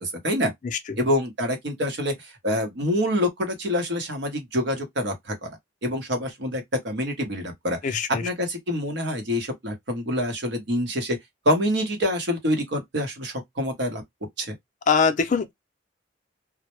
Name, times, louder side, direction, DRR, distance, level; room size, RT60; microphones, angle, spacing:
voice 1, 0.0-0.5 1.0-5.5 5.8-11.2 11.5-14.0 14.4-14.5, left 1 dB, 70° right, 0.8 m, -26 dB
voice 2, 7.8-8.2 14.9-15.5, left 5 dB, 45° left, 0.4 m, -22 dB
2.1 x 2.0 x 2.9 m
head